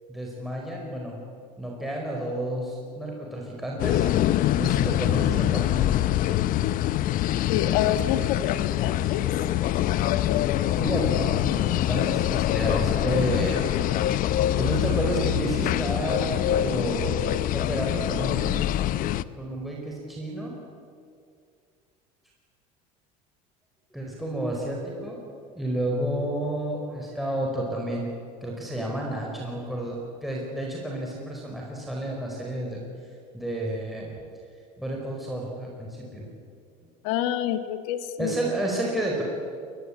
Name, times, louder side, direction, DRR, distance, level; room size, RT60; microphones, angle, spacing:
voice 1, 0.1-1.2 1.6-4.1 4.6-5.8 10.7-18.7 19.0-20.6 23.9-28.1 28.4-32.8 33.3-34.1 34.8-36.3 38.2-39.2, right 1 dB, ahead, -2 dB, 4.8 m, -31 dB
sound 1, 3.8-19.2, left 13 dB, 50° left, 0.8 m, -24 dB
voice 2, 7.5-9.2 37.0-38.4, left 11 dB, 80° left, 10 dB, 1.6 m, -27 dB
22.0 x 21.0 x 8.6 m, 2.3 s
supercardioid pair, 110°, 18 cm